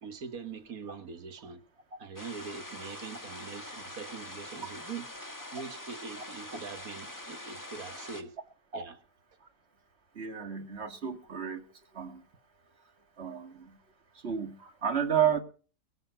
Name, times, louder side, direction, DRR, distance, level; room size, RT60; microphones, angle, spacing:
voice 1, 0.0-1.6 2.0-5.1 5.5-8.4 8.7-9.0, right 5 dB, 80° right, 1.9 m, -43 dB
sound 1, 2.2-8.2, left 1 dB, 15° left, 1.5 m, -44 dB
voice 2, 10.2-11.6 11.9-12.2 13.2-13.7 14.2-15.4, right 8 dB, 50° right, 2.0 m, -31 dB
21.5 x 8.1 x 5.7 m
omnidirectional pair, 1.5 m